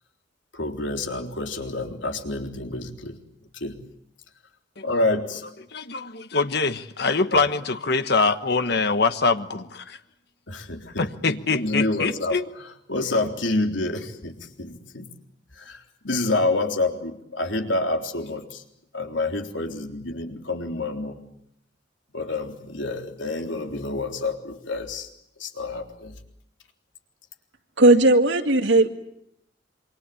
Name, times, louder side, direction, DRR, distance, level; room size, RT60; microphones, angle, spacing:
voice 1, 0.5-3.2 3.5-3.7 4.8-5.4 7.3-7.4 10.5-12.4 12.9-15.1 15.6-18.6 18.9-21.2 22.1-25.1 25.4-26.1, left 2 dB, 85° left, 4 dB, 3.6 m, -28 dB
voice 2, 5.7-10.0 10.9-12.4, left 4 dB, 60° left, 10 dB, 1.3 m, -24 dB
voice 3, 27.8-28.9, right 2 dB, 80° right, 6 dB, 2.3 m, -16 dB
27.5 x 25.0 x 8.5 m, 0.77 s
head